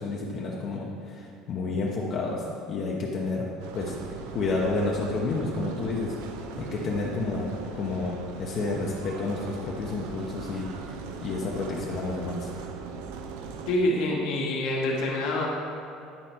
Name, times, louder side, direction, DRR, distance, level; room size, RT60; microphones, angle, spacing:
voice 1, 0.0-3.5 3.7-4.0 4.3-6.1 6.6-10.7 11.2-12.5, left 3 dB, 40° left, -3 dB, 0.9 m, -30 dB
sound 1, 3.6-13.8, right 5 dB, 90° right, 0.6 m, -39 dB
voice 2, 13.7-15.5, left 1 dB, 70° left, -2 dB, 1.6 m, -26 dB
10.5 x 4.8 x 4.4 m, 2.6 s
cardioid pair, 155°, 0 cm